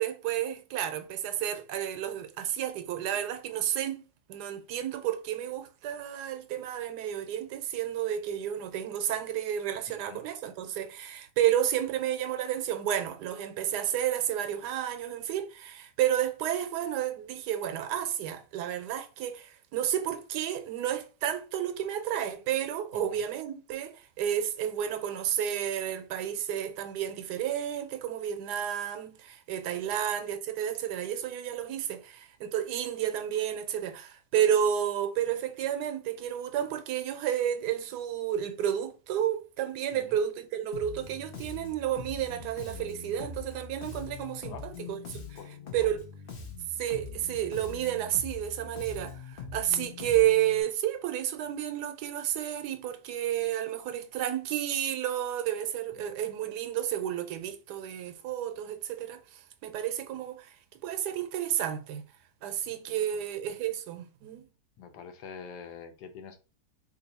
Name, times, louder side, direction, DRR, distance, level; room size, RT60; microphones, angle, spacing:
voice 1, 0.0-4.0 4.3-44.5 44.9-45.4 45.7-46.0 46.8-60.6 60.8-62.1 62.4-64.4, right 10 dB, 80° right, 1.1 m, -31 dB
voice 2, 9.9-10.2 22.9-23.2 39.9-40.2 44.5-44.7 45.3-46.0 46.4-46.5 56.0-56.2 62.6-63.2 64.8-66.4, left 6 dB, 80° left, 1.3 m, -47 dB
Bass guitar, 40.7-50.6, left 5 dB, 55° left, 0.6 m, -43 dB
2.9 x 2.6 x 4.0 m
omnidirectional pair, 1.8 m